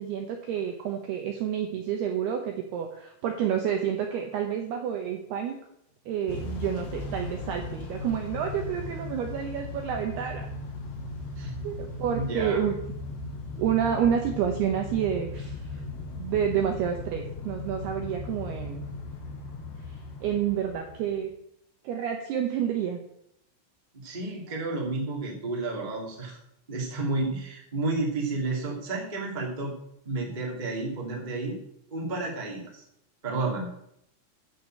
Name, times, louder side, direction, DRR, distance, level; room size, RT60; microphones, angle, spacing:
voice 1, 0.0-5.6 6.1-10.5 11.6-12.8 13.6-15.8 16.2-18.9 20.2-21.3 21.8-23.0, right 8 dB, 75° right, 3 dB, 2.5 m, -29 dB
Motor vehicle (road) / Engine starting / Accelerating revving vroom, 6.3-21.3, left 2 dB, 85° left, 4.7 m, -37 dB
voice 2, 12.1-12.6 23.9-26.4 26.7-29.7 30.0-31.6 31.9-32.8 33.2-33.7, right 3 dB, 15° right, -1 dB, 1.6 m, -31 dB
12.0 x 5.9 x 7.7 m, 0.75 s
omnidirectional pair, 5.8 m